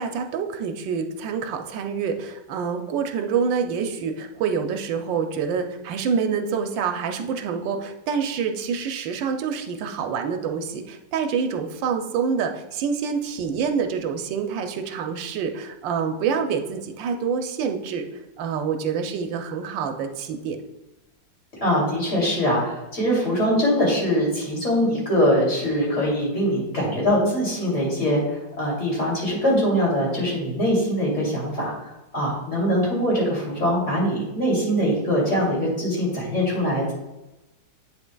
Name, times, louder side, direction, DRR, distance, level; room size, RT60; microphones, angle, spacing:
voice 1, 0.0-18.0 18.4-20.6, right 6 dB, 80° right, 5 dB, 1.3 m, -27 dB
voice 2, 21.5-36.9, equal, 40° left, -4 dB, 3.0 m, -23 dB
8.4 x 7.0 x 2.2 m, 0.99 s
omnidirectional pair, 2.0 m